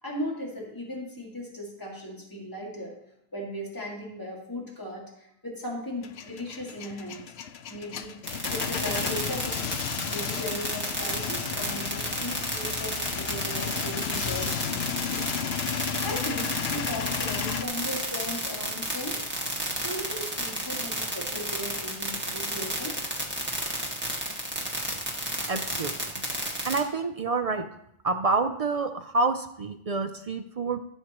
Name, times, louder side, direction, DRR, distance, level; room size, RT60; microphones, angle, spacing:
voice 1, 0.0-2.9 3.3-5.0 5.4-7.2 7.7-8.1 8.5-9.6 10.1-15.3 16.0-19.2 19.8-23.0, left 1 dB, 20° left, -3 dB, 2.2 m, -37 dB
Male speech man speaking / Vehicle / Engine starting, 6.0-17.6, left 8 dB, 75° left, 0.9 m, -33 dB
sound 1, 8.3-26.8, right 1 dB, 10° right, 1.8 m, -31 dB
voice 2, 25.5-25.9 26.6-27.7 28.0-30.8, right 3 dB, 50° right, 7 dB, 0.4 m, -27 dB
14.5 x 7.3 x 3.0 m, 0.75 s
omnidirectional pair, 1.1 m